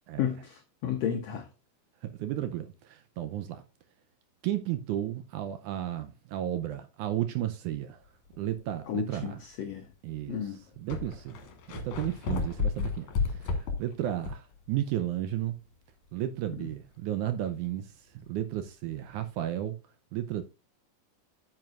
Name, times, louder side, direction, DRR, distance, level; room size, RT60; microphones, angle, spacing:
voice 1, 0.2-1.5 8.9-9.9 10.3-10.6 16.6-16.7, left 9 dB, 85° left, 1.4 m, -33 dB
voice 2, 2.0-3.6 4.4-8.0 8.4-9.4 10.0-11.4 11.8-15.6 16.1-19.8 20.1-20.4, right 12 dB, 75° right, 1.9 m, -33 dB
sound 1, 8.3-8.6 9.3-9.4 10.3-10.4 10.5-14.5 14.9-15.0 18.5-18.7, left 4 dB, 60° left, 2.7 m, -32 dB
9.1 x 7.7 x 2.4 m
omnidirectional pair, 4.0 m